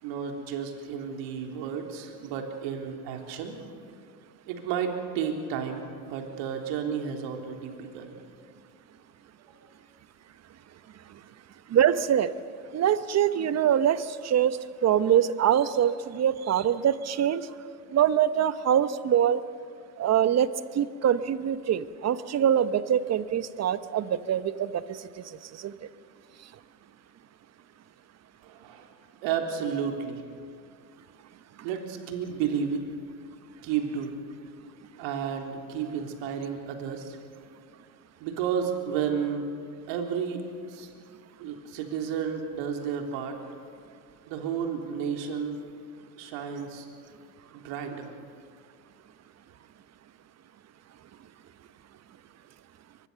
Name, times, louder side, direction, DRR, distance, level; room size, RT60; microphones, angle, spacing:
voice 1, 0.0-3.6 4.5-8.2 28.4-28.9 29.2-30.2 31.6-32.9 33.6-34.3 35.0-37.2 38.2-39.4 39.9-40.4 40.7-40.9 41.4-43.4 44.3-45.7 46.2-46.9 47.5-48.2, right 7 dB, 60° right, 3 dB, 3.6 m, -32 dB
voice 2, 11.7-12.3 12.7-17.5 17.9-19.4 20.0-20.5 20.7-25.0 25.6-25.8, right 9 dB, 30° right, 14 dB, 1.0 m, -24 dB
24.0 x 21.5 x 6.9 m, 2.3 s
hypercardioid pair, 95°, 50 cm